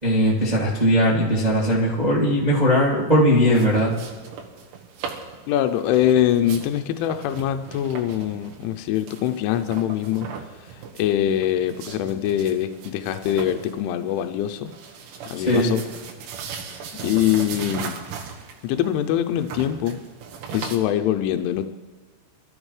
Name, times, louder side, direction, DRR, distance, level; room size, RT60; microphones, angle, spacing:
voice 1, 0.0-3.9 15.3-15.7, equal, 25° right, -5 dB, 0.8 m, -19 dB
sound 1, 3.3-20.8, right 6 dB, 85° right, 3.9 m, -38 dB
voice 2, 5.5-10.3 11.0-14.7 15.3-15.8 17.0-18.0 18.6-20.0 20.5-21.7, left 11 dB, 85° left, 7 dB, 3.1 m, -23 dB
24.0 x 14.0 x 3.2 m, 1.4 s
omnidirectional pair, 5.5 m